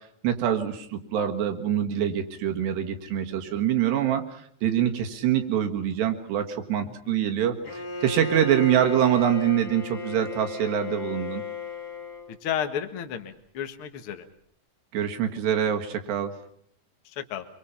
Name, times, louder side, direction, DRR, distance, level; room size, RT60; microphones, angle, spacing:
voice 1, 0.2-11.4 14.9-16.3, right 10 dB, 75° right, 5 dB, 3.7 m, -25 dB
Bowed string instrument, 7.6-12.4, left 2 dB, 20° left, 1.9 m, -35 dB
voice 2, 12.4-14.2 17.2-17.4, left 9 dB, 60° left, 6 dB, 1.4 m, -32 dB
25.5 x 23.5 x 5.7 m, 0.66 s
omnidirectional pair, 5.1 m